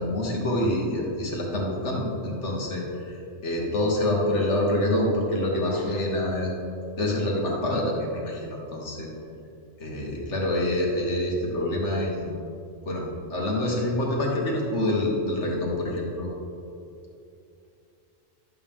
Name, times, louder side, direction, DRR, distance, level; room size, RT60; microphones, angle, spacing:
voice 1, 0.0-6.5 7.0-9.1 9.8-12.3 12.9-13.0 13.3-16.3, left 1 dB, 90° left, -2 dB, 1.9 m, -26 dB
11.5 x 7.3 x 3.7 m, 2.6 s
omnidirectional pair, 1.2 m